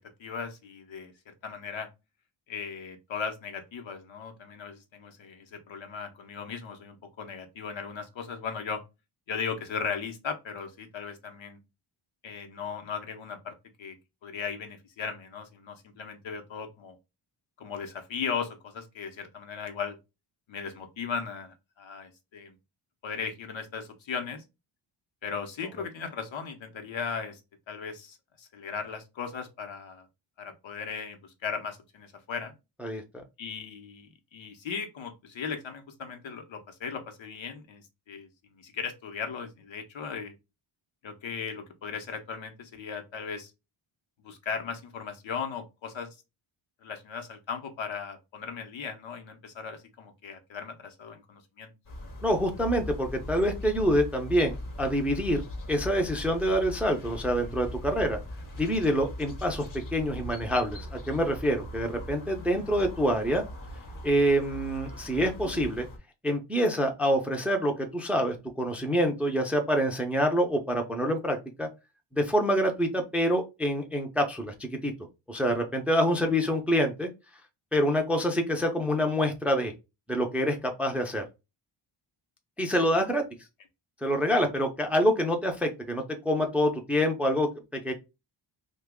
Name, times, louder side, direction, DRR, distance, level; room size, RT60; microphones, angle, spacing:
voice 1, 0.2-1.9 2.5-8.8 9.3-11.6 12.2-14.0 14.2-17.0 17.6-20.0 20.5-22.5 23.0-24.4 25.2-27.4 27.7-30.1 30.4-32.5 33.4-38.3 38.5-40.4 41.0-43.5 44.2-46.1 46.8-51.7 64.5-64.6, left 6 dB, 70° left, 0.9 m, -37 dB
sound 1, 51.9-66.0, left 1 dB, 40° left, 0.8 m, -40 dB
voice 2, 52.2-55.4 55.7-58.2 58.6-59.6 59.9-63.4 64.0-65.9 66.2-71.7 72.1-74.9 75.3-77.1 77.7-79.7 80.1-81.2 82.6-83.2 84.0-87.9, equal, 5° right, 0.4 m, -26 dB
2.9 x 2.3 x 3.4 m
wide cardioid pair, 140°, 48 cm